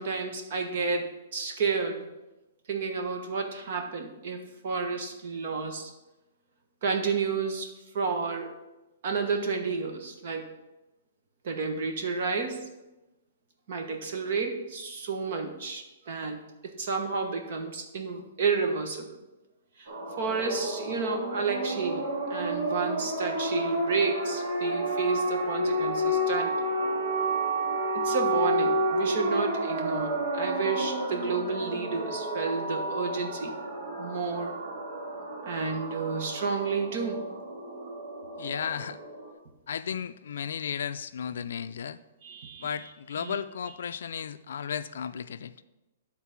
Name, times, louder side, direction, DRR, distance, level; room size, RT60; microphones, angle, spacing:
voice 1, 0.0-2.1 2.7-5.9 6.8-7.7 7.9-8.5 9.0-10.5 11.4-12.7 13.7-19.2 19.8-19.9 20.2-26.7 27.9-33.6 34.0-34.5 35.4-37.3 42.2-42.9 43.2-43.4, right 4 dB, 40° right, 3 dB, 1.1 m, -31 dB
sound 1, 19.9-39.3, right 1 dB, 60° right, 2.1 m, -30 dB
voice 2, 38.4-39.0 39.7-42.0 42.6-45.5, left 7 dB, 65° left, 12 dB, 0.4 m, -34 dB
10.5 x 4.0 x 5.8 m, 1.0 s
hypercardioid pair, 175°, 0 cm